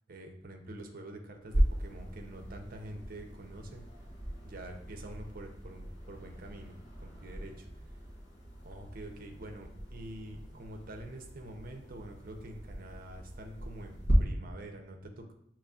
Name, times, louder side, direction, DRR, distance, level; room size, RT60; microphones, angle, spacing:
voice 1, 0.1-3.9 4.4-8.0 8.6-15.3, right 1 dB, 50° right, 4 dB, 0.6 m, -46 dB
sound 1, 1.5-14.1, right 1 dB, 70° left, 1.3 m, -38 dB
6.8 x 3.0 x 2.4 m, 0.74 s
head